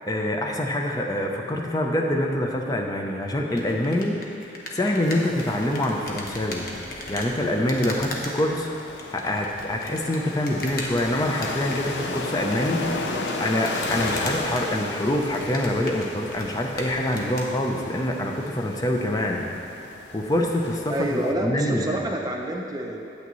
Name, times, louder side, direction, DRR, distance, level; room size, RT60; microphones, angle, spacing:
voice 1, 0.1-4.2 4.7-6.7 7.1-8.7 9.1-13.1 13.4-19.4 20.1-22.0, left 1 dB, 20° left, 1 dB, 0.6 m, -25 dB
sound 1, 3.5-17.5, left 2 dB, 55° left, 0.9 m, -39 dB
sound 2, 5.0-21.3, left 3 dB, 80° left, 0.6 m, -35 dB
voice 2, 20.9-23.1, right 1 dB, 20° right, 1 dB, 0.6 m, -28 dB
8.6 x 8.1 x 3.1 m, 2.9 s
head